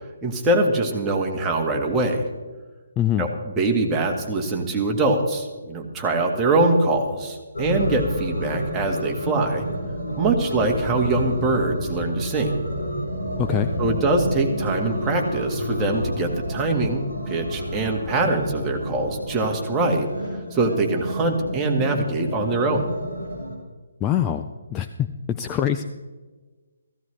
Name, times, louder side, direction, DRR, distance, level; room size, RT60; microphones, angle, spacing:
voice 1, 0.2-2.3 3.2-9.6 10.2-12.6 13.8-20.1 20.5-22.9, right 2 dB, 15° right, 1 dB, 1.7 m, -23 dB
voice 2, 3.0-3.3 13.4-13.7 24.0-25.8, left 10 dB, 15° left, 7 dB, 0.4 m, -24 dB
sound 1, 7.5-23.6, equal, 70° left, 4.1 m, -30 dB
15.5 x 15.0 x 3.3 m, 1.3 s
figure-of-eight pair, 140°, 0 cm